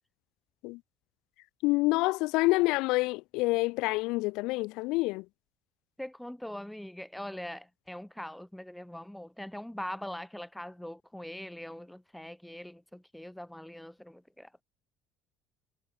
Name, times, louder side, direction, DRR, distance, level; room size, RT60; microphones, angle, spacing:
voice 1, 1.6-5.2, left 23 dB, 80° left, 0.7 m, -27 dB
voice 2, 6.0-14.6, left 1 dB, 5° left, 2.0 m, -42 dB
cardioid pair, 115°, 0 cm